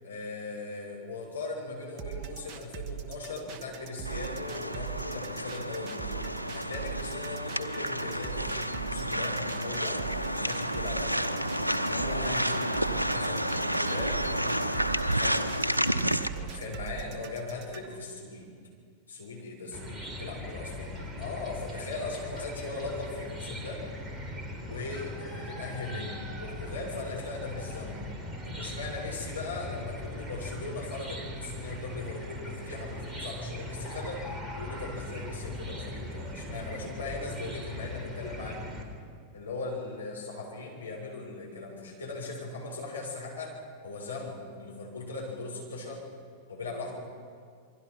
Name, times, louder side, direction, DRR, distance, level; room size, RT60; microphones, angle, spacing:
voice 1, 0.0-11.3 11.7-14.9 15.1-15.5 16.3-18.5 19.1-23.8 24.6-28.0 28.4-38.6 39.3-43.6 43.8-46.1 46.5-47.0, left 3 dB, 75° left, -2 dB, 7.0 m, -39 dB
sound 1, 2.0-18.0, right 9 dB, 35° right, 1.8 m, -41 dB
sound 2, 4.0-16.3, equal, 85° right, 0.9 m, -30 dB
Chicken rooster / Cricket, 19.7-38.8, left 1 dB, 5° right, 4.0 m, -39 dB
28.5 x 23.0 x 5.8 m, 2.1 s
figure-of-eight pair, 90°, 0 cm